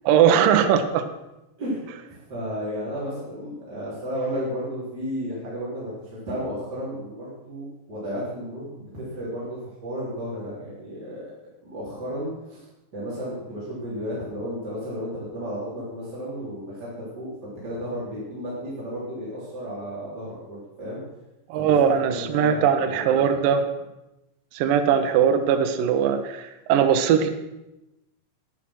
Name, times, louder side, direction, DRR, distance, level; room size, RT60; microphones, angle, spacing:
voice 1, 0.1-1.1 1.9-2.0 21.5-23.6 24.5-27.3, right 8 dB, 70° right, 7 dB, 2.2 m, -20 dB
voice 2, 1.6-11.3 11.6-12.7 12.9-21.0 21.6-23.3, equal, 25° right, -9 dB, 3.8 m, -33 dB
11.0 x 10.0 x 6.1 m, 0.95 s
omnidirectional pair, 4.8 m